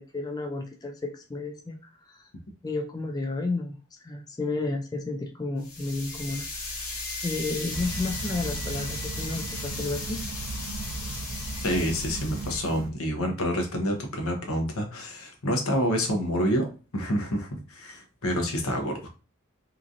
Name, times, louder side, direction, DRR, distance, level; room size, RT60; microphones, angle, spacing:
voice 1, 0.0-1.8 2.1-2.3 2.6-6.9 7.2-10.2, left 3 dB, 20° left, 3 dB, 0.3 m, -32 dB
sound 1, 5.6-12.8, left 2 dB, 70° left, 1.1 m, -36 dB
sound 2, 7.7-12.9, right 2 dB, 70° right, 0.4 m, -37 dB
voice 2, 11.6-19.1, equal, 90° left, 3 dB, 0.8 m, -28 dB
3.0 x 2.4 x 2.5 m, 0.34 s
head